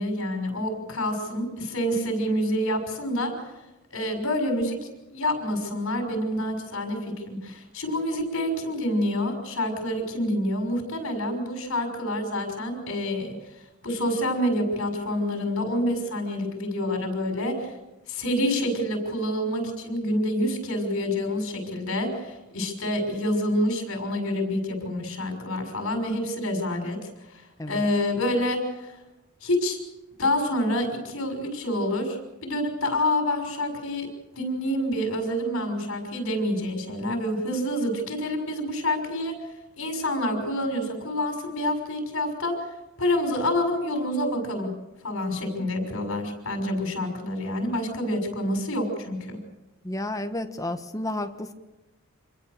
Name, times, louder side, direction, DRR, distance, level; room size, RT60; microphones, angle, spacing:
voice 1, 0.0-3.3 3.9-13.3 13.8-17.7 18.1-29.0 29.4-29.8 30.2-34.1 34.3-39.4 39.8-42.6 43.0-44.7 45.0-49.4, left 1 dB, 65° left, 3 dB, 6.1 m, -27 dB
voice 2, 49.8-51.5, left 1 dB, 15° left, 7 dB, 1.3 m, -31 dB
27.0 x 21.5 x 6.7 m, 1.0 s
head